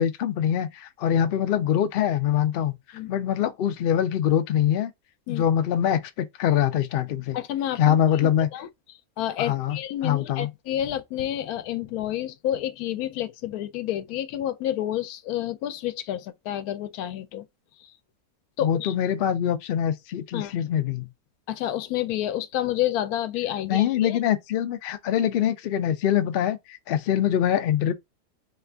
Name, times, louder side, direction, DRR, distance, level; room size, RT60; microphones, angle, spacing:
voice 1, 0.0-2.7 3.1-4.9 5.3-7.4 7.8-8.5 9.4-10.5 18.6-21.1 23.6-27.9, left 10 dB, 65° left, 0.6 m, -24 dB
voice 2, 7.3-8.7 9.2-17.4 18.6-18.9 20.3-20.5 21.5-24.2, left 12 dB, 85° left, 1.1 m, -29 dB
4.3 x 2.4 x 3.3 m
omnidirectional pair, 1.5 m